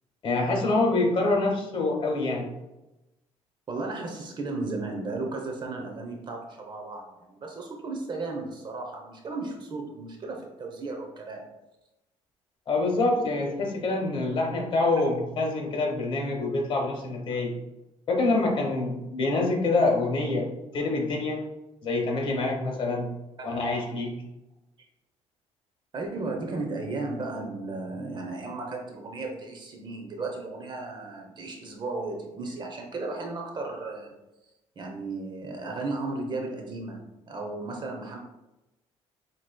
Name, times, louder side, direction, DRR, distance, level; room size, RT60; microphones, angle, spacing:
voice 1, 0.2-2.5 12.7-17.5 18.1-20.5 20.7-21.4 21.8-23.1 23.4-24.1, left 2 dB, 45° left, 0 dB, 1.5 m, -26 dB
voice 2, 3.7-11.5 23.4-23.5 25.9-34.2 34.8-38.2, right 3 dB, 40° right, 2 dB, 0.8 m, -35 dB
7.5 x 3.0 x 2.2 m, 0.97 s
cardioid pair, 105°, 12 cm